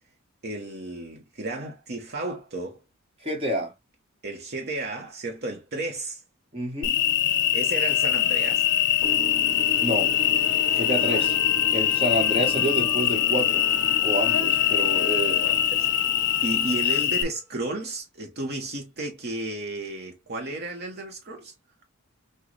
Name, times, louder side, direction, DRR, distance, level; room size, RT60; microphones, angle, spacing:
voice 1, 0.4-2.8 4.2-6.2 7.5-8.7 11.0-11.3 15.4-15.9 16.4-21.5, right 2 dB, 45° right, 0.9 m, -33 dB
voice 2, 3.2-3.7 6.5-6.9 9.8-10.1 10.7-11.3 11.7-13.6 14.0-15.4, equal, 25° right, 1.2 m, -28 dB
Cricket, 6.8-17.2, left 11 dB, 55° left, 0.6 m, -23 dB
sound 1, 9.0-17.2, right 1 dB, 15° left, 1.2 m, -38 dB
6.1 x 2.2 x 3.2 m
head